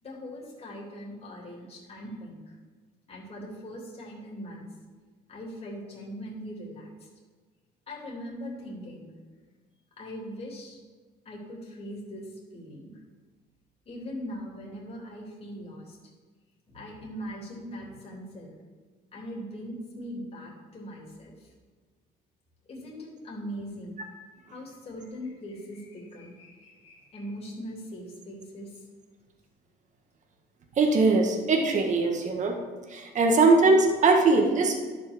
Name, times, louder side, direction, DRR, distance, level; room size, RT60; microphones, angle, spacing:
voice 1, 0.0-2.5 3.1-4.7 5.3-7.1 7.9-9.1 10.0-10.8 11.2-13.0 13.8-16.0 16.7-18.5 19.1-21.5 22.6-23.9 24.5-28.8, equal, 35° left, -3 dB, 3.4 m, -40 dB
voice 2, 30.7-32.6 32.9-34.8, right 3 dB, 45° right, 2 dB, 1.8 m, -21 dB
11.5 x 6.2 x 6.3 m, 1.4 s
cardioid pair, 110°, 17 cm